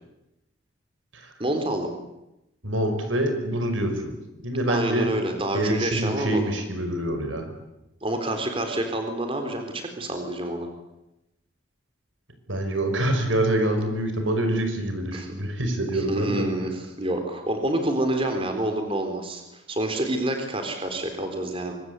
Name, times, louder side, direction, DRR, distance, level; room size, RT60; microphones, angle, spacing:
voice 1, 1.4-1.9 4.7-6.5 8.0-10.7 15.1-15.3 15.9-16.7 17.0-21.7, right 1 dB, 30° right, 5 dB, 3.8 m, -28 dB
voice 2, 2.6-4.2 4.4-5.1 5.5-7.5 12.5-16.5, right 1 dB, 90° right, 6 dB, 5.6 m, -26 dB
25.0 x 23.0 x 8.3 m, 0.89 s
head